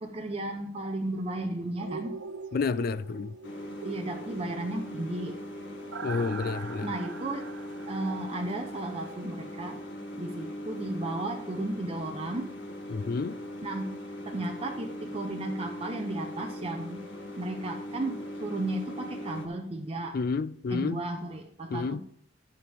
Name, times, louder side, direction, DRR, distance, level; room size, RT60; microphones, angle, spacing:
voice 1, 0.0-2.2 3.8-5.4 6.8-7.5 7.9-9.8 10.2-12.5 13.6-13.9 14.3-17.0 17.4-20.2 20.7-22.0, right 2 dB, 30° right, 0.7 m, -34 dB
sound 1, 1.8-9.7 10.0-10.1, right 4 dB, 90° right, 0.8 m, -43 dB
voice 2, 2.5-3.3 6.0-6.9 12.9-13.4 20.1-21.0 21.7-22.0, left 4 dB, 50° left, 0.4 m, -30 dB
sound 2, 3.4-19.5, equal, 75° left, 1.7 m, -40 dB
12.0 x 7.2 x 3.5 m
head